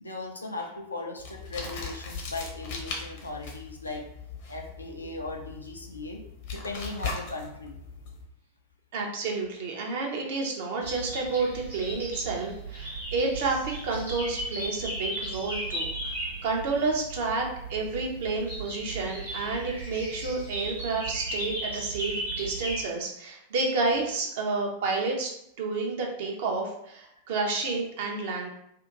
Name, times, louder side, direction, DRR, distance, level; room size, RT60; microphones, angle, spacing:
voice 1, 0.0-4.1 4.5-6.2 6.5-7.8, left 2 dB, 80° left, 2 dB, 0.5 m, -38 dB
sound 1, 1.2-8.2, left 4 dB, 50° left, 0.8 m, -39 dB
voice 2, 8.9-16.1 16.4-25.3 25.6-28.5, right 3 dB, 55° right, 0 dB, 0.8 m, -30 dB
sound 2, 10.8-22.8, right 2 dB, 80° right, 0.9 m, -36 dB
2.8 x 2.5 x 3.7 m, 0.76 s
figure-of-eight pair, 90°, 0 cm